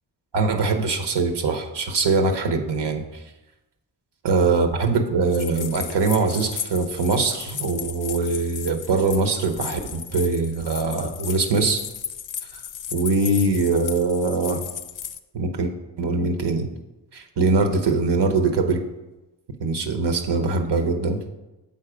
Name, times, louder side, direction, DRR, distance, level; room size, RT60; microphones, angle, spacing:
voice 1, 0.3-3.0 4.2-11.8 12.9-14.6 15.3-15.7 16.0-16.7 17.1-18.8 19.6-21.2, right 3 dB, 70° right, 5 dB, 1.0 m, -22 dB
sound 1, 5.3-15.2, left 8 dB, 50° left, 0.5 m, -35 dB
7.2 x 4.1 x 5.0 m, 1.0 s
cardioid pair, 55°, 43 cm